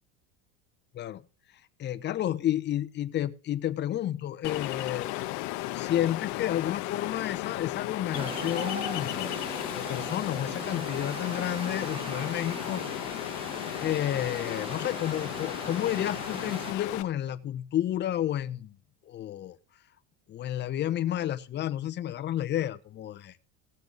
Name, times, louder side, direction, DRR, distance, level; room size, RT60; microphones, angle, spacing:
voice 1, 1.8-5.1 5.7-12.8 13.8-18.8 19.1-19.6 20.3-23.4, left 12 dB, 30° left, 11 dB, 0.9 m, -31 dB
Ocean, 4.4-17.0, left 18 dB, 60° left, 0.9 m, -35 dB
sound 1, 8.1-16.7, right 4 dB, 15° right, 0.7 m, -40 dB
17.5 x 6.8 x 4.0 m, 0.37 s
supercardioid pair, 130°, 34 cm